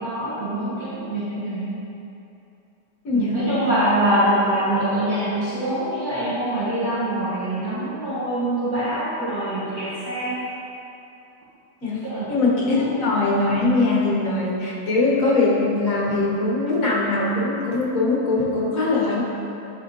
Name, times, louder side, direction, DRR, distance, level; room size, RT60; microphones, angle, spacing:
voice 1, 0.0-1.7 3.1-10.5 12.0-12.3 12.8-12.9, right 1 dB, 55° right, -11 dB, 1.7 m, -24 dB
voice 2, 3.0-3.6 11.8-19.2, left 3 dB, 50° left, -6 dB, 1.6 m, -21 dB
10.0 x 4.4 x 3.0 m, 2.8 s
omnidirectional pair, 2.0 m